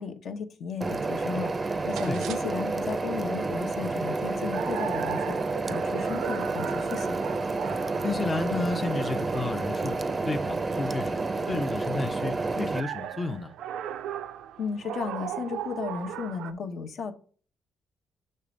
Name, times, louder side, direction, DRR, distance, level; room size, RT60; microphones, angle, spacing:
voice 1, 0.0-7.2 14.6-17.1, left 5 dB, 65° left, 0.9 m, -35 dB
sound 1, 0.8-12.8, right 3 dB, 30° right, 0.5 m, -30 dB
sound 2, 1.9-16.5, right 10 dB, 85° right, 0.4 m, -39 dB
voice 2, 8.0-10.0 10.3-13.5, left 3 dB, 30° left, 0.6 m, -32 dB
6.6 x 3.3 x 5.1 m
cardioid pair, 90°, 0 cm